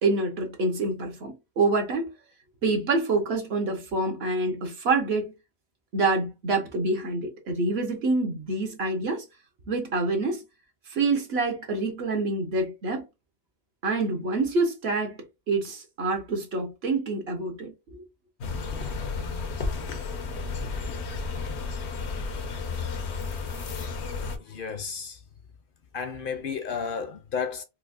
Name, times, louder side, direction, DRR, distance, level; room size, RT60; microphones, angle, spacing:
voice 1, 0.0-2.1 2.6-5.3 5.9-9.2 9.7-10.4 10.9-13.0 13.8-15.2 15.5-18.0, right 3 dB, 70° right, 1.2 m, -26 dB
sound 1, 18.4-24.4, left 4 dB, 80° left, 1.0 m, -32 dB
voice 2, 24.4-25.2 25.9-27.6, left 6 dB, 60° left, 0.7 m, -32 dB
4.5 x 2.1 x 2.4 m
omnidirectional pair, 1.1 m